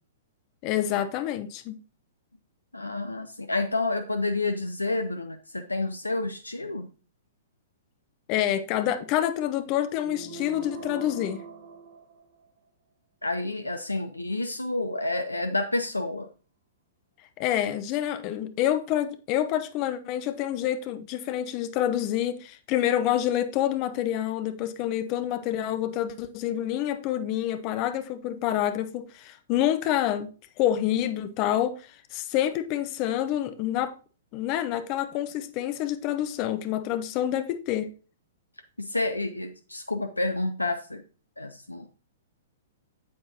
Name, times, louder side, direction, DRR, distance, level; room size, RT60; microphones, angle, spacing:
voice 1, 0.6-1.8 8.3-11.4 17.4-30.3 30.6-31.8 32.1-33.9 34.3-37.9, left 11 dB, 35° left, 0.8 m, -27 dB
voice 2, 2.7-6.9 13.2-16.3 38.8-41.0 41.4-41.9, left 2 dB, 85° left, 0.6 m, -29 dB
sound 1, 10.0-12.7, right 5 dB, 45° right, 3.1 m, -42 dB
8.6 x 7.9 x 2.8 m
figure-of-eight pair, 110°, 0 cm